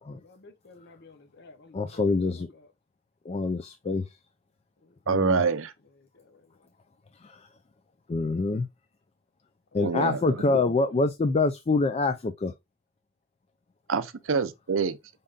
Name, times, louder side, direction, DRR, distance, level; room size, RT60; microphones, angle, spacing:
voice 1, 0.2-2.7 4.8-5.3 6.0-6.6 9.7-10.9, left 3 dB, 55° left, 0.8 m, -54 dB
voice 2, 1.7-2.5 3.3-4.1 5.1-5.4 7.2-7.3 8.1-8.7 9.7-12.5, left 3 dB, 30° left, 0.4 m, -25 dB
voice 3, 5.1-5.7 9.8-10.4 13.9-15.0, right 5 dB, 70° right, 0.6 m, -26 dB
5.4 x 3.6 x 2.4 m
head